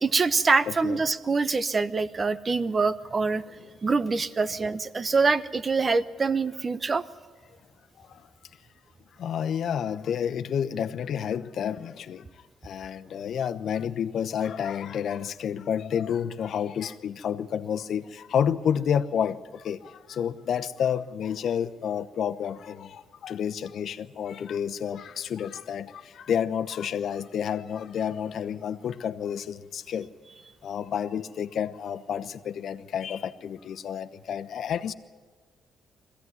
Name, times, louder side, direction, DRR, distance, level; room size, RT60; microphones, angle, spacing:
voice 1, 0.0-3.4 3.8-7.0, right 4 dB, 35° right, 14 dB, 0.9 m, -25 dB
voice 2, 0.7-1.0 3.6-3.7 4.5-4.6 9.2-12.2 12.6-30.1 30.6-34.9, left 8 dB, 65° left, 11 dB, 0.9 m, -30 dB
22.0 x 16.0 x 9.6 m, 1.5 s
cardioid pair, 90°, 0 cm